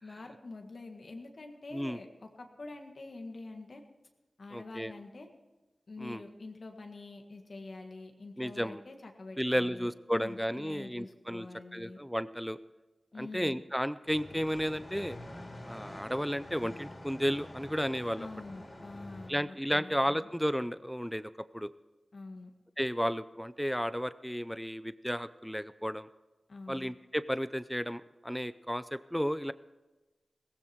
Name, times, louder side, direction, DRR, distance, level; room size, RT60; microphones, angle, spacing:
voice 1, 0.0-3.8 4.4-5.3 5.9-12.0 13.1-13.6 18.2-20.3 22.1-22.5 26.5-26.9, left 3 dB, 65° left, 3 dB, 1.8 m, -46 dB
voice 2, 4.5-4.9 6.0-6.2 8.4-8.8 9.4-11.5 11.7-12.6 13.2-15.2 15.6-18.3 19.3-21.7 22.8-26.1 26.7-29.5, equal, ahead, 15 dB, 0.5 m, -33 dB
sound 1, 14.0-19.3, left 1 dB, 40° left, 3.6 m, -47 dB
16.5 x 15.0 x 4.5 m, 1.1 s
cardioid pair, 50°, 0 cm